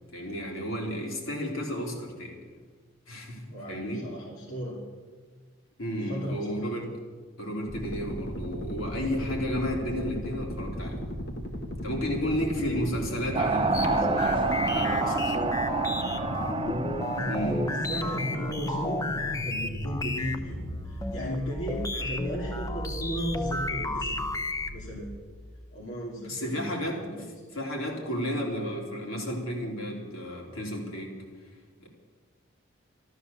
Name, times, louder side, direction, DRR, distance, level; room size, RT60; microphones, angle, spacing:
voice 1, 0.1-2.4 3.1-4.0 5.8-6.9 7.4-11.0 11.8-15.5 17.3-17.7 26.2-27.3 27.5-31.1 31.8-31.9, equal, 90° left, -1 dB, 3.6 m, -33 dB
voice 2, 3.5-4.8 5.9-6.7 12.6-12.9 15.0-15.2 17.1-19.0 19.4-24.2 24.7-25.1 25.7-27.3, equal, 70° left, -4 dB, 2.7 m, -35 dB
sound 1, 7.7-25.0, equal, 55° left, 1.6 m, -37 dB
sound 2, 13.3-19.4, right 3 dB, 25° right, 0.5 m, -29 dB
sound 3, 13.7-24.9, left 2 dB, 15° left, 0.7 m, -33 dB
13.5 x 13.0 x 7.1 m, 1.5 s
head